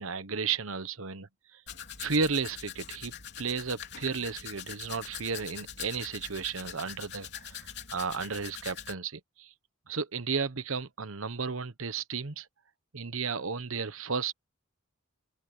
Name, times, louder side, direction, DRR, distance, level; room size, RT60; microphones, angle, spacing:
voice 1, 0.0-1.6 2.0-7.6 7.9-9.5 9.9-12.5 12.9-14.3, right 5 dB, 80° right, 1.2 m, -33 dB
Domestic sounds home sounds, 1.7-8.9, left 9 dB, 55° left, 3.6 m, -43 dB
open air
head